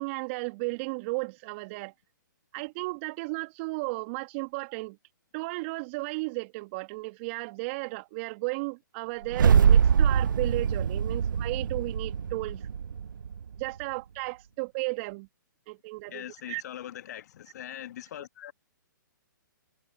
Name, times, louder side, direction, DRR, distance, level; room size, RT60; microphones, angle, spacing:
voice 1, 0.0-1.9 2.5-5.0 5.3-12.6 13.6-15.3 15.7-16.6, right 27 dB, 35° right, 1.8 m, -34 dB
sound 1, 9.2-13.6, right 7 dB, 70° right, 0.7 m, -23 dB
voice 2, 16.1-18.5, left 11 dB, 55° left, 1.4 m, -41 dB
hypercardioid pair, 130°, 11 cm